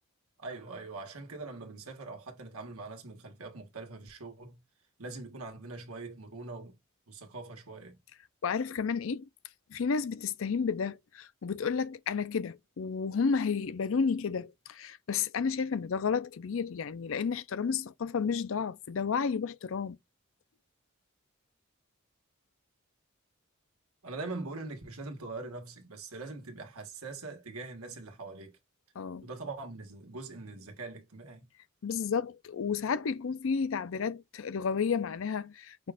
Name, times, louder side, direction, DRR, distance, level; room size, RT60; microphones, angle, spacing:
voice 1, 0.4-4.6 5.0-6.7 7.1-8.0 24.0-28.6 29.2-31.5, right 3 dB, 85° right, 1.4 m, -42 dB
voice 2, 8.4-9.3 9.7-20.0 29.0-29.3 31.8-35.9, left 5 dB, 65° left, 0.4 m, -31 dB
5.9 x 2.5 x 3.5 m
head